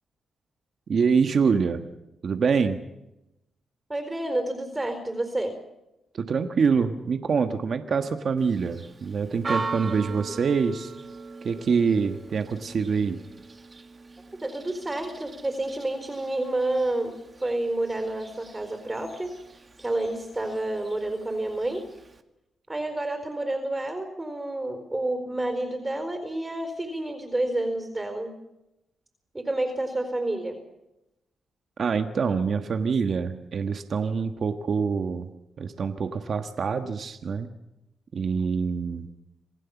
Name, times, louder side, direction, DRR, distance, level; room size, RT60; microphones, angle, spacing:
voice 1, 0.9-1.8 2.2-2.8 6.1-10.9 11.4-13.2 31.8-35.3 35.6-37.5 38.1-39.1, right 5 dB, 60° right, 8 dB, 1.4 m, -25 dB
voice 2, 3.9-5.5 14.4-17.1 17.4-19.3 19.8-21.8 22.7-28.3 29.3-30.6, right 1 dB, 20° right, 5 dB, 4.4 m, -29 dB
Church bell, 8.4-22.2, right 3 dB, 35° right, 2.0 m, -40 dB
27.5 x 16.0 x 7.2 m, 0.92 s
cardioid pair, 65°, 0 cm